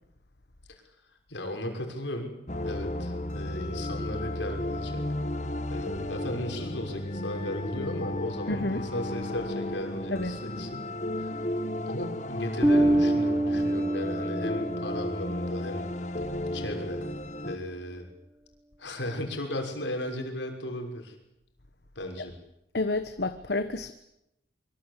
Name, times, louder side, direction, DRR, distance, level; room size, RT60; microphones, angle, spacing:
voice 1, 1.3-5.1 5.7-10.9 11.2-11.3 11.9-15.9 16.5-17.1 17.4-18.1 18.8-21.1 21.9-22.4, left 1 dB, 80° left, 3 dB, 6.2 m, -36 dB
sound 1, 2.5-17.6, left 1 dB, 40° left, 1.8 m, -34 dB
voice 2, 8.5-8.8 10.1-10.4 22.7-23.9, left 2 dB, 65° left, 9 dB, 1.3 m, -30 dB
Bass guitar, 12.6-15.1, right 1 dB, 10° right, 1.1 m, -25 dB
26.0 x 24.5 x 8.4 m, 0.87 s
head